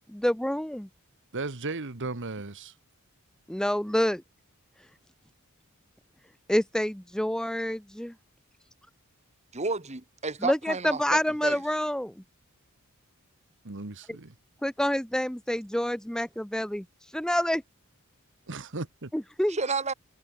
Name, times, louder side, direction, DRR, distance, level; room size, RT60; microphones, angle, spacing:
voice 1, 0.1-0.9 3.5-4.2 6.5-8.1 10.4-12.1 14.6-16.8 17.1-17.6 19.1-19.6, equal, 5° left, 0.7 m, -27 dB
voice 2, 1.3-2.7 13.6-14.3 18.5-19.1, right 3 dB, 60° right, 1.5 m, -36 dB
voice 3, 9.5-11.6 19.5-19.9, right 4 dB, 30° right, 2.4 m, -31 dB
head